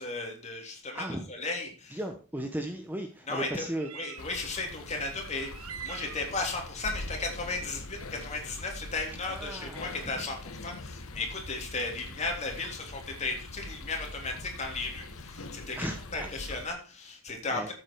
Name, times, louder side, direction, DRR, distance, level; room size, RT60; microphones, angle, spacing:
voice 1, 0.0-2.0 3.3-3.7 3.9-17.7, left 3 dB, 30° left, 2 dB, 3.5 m, -35 dB
voice 2, 0.9-1.2 1.9-3.9 9.3-10.2 15.8-16.3 17.5-17.7, right 1 dB, 10° right, 5 dB, 1.1 m, -36 dB
sound 1, 2.4-2.5 3.7-4.5 5.5-6.4, right 9 dB, 85° right, 0.9 m, -43 dB
sound 2, 4.2-16.7, left 2 dB, 80° left, 1.4 m, -43 dB
13.5 x 8.0 x 4.7 m, 0.36 s
head